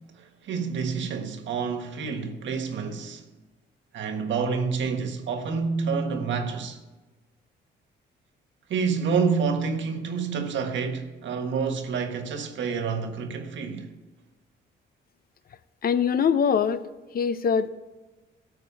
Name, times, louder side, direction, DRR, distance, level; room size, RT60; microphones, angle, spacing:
voice 1, 0.1-3.3 3.9-6.8 8.7-13.9, right 5 dB, 70° right, 1.5 m, -28 dB
voice 2, 15.8-16.9 17.1-17.7, left 7 dB, 50° left, 0.6 m, -23 dB
13.5 x 4.6 x 8.5 m
cardioid pair, 90°, 20 cm